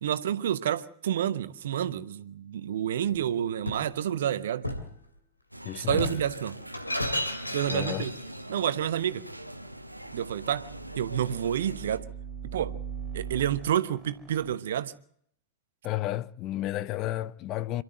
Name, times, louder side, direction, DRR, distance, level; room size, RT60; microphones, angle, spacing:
voice 1, 0.0-4.7 5.8-6.6 7.5-8.1 8.5-9.2 10.1-10.7 11.0-12.0 12.4-12.7 13.1-14.9, right 10 dB, 60° right, 1.1 m, -29 dB
Shatter, 3.0-3.9 4.6-5.0 5.8-8.4, left 1 dB, 85° left, 2.7 m, -33 dB
sound 1, 5.5-12.0, right 1 dB, 90° right, 1.2 m, -43 dB
voice 2, 5.6-6.2 7.7-8.0 15.8-17.8, left 14 dB, 35° left, 0.7 m, -32 dB
sound 2, 9.8-14.6, right 7 dB, 15° right, 4.0 m, -41 dB
27.5 x 12.5 x 7.8 m
figure-of-eight pair, 90°, 0 cm